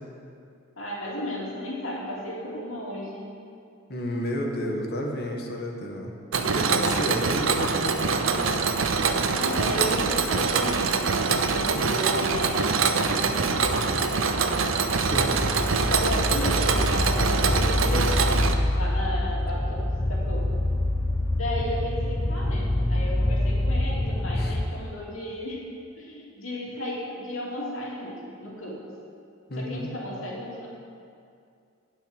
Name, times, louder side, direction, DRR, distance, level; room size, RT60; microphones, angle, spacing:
voice 1, 0.8-3.3 6.6-7.1 9.4-14.4 15.9-18.2 18.7-20.5 21.3-25.7 26.0-28.8 29.6-30.7, equal, 85° left, -4 dB, 2.7 m, -34 dB
voice 2, 3.9-8.7 11.7-12.0 15.0-15.4 24.4-24.5 29.5-29.9, equal, 55° left, 1 dB, 1.5 m, -32 dB
Mechanisms, 6.3-18.5, right 4 dB, 80° right, 0.7 m, -24 dB
sound 1, 12.0-24.7, left 1 dB, 10° left, 0.5 m, -27 dB
11.5 x 5.7 x 8.7 m, 2.4 s
head